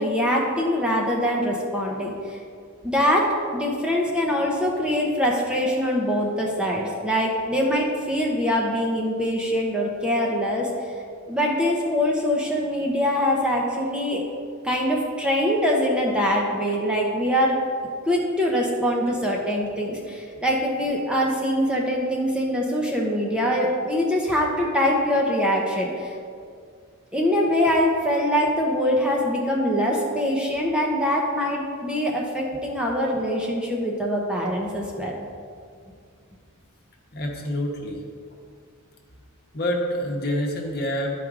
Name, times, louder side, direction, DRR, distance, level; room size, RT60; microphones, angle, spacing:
voice 1, 0.0-2.4 2.8-10.7 11.3-14.2 14.6-17.6 18.1-26.1 27.1-35.1, equal, 5° right, -2 dB, 0.8 m, -23 dB
voice 2, 37.1-38.0 39.5-41.1, equal, 45° left, 0 dB, 1.1 m, -27 dB
12.0 x 4.7 x 3.7 m, 2.2 s
head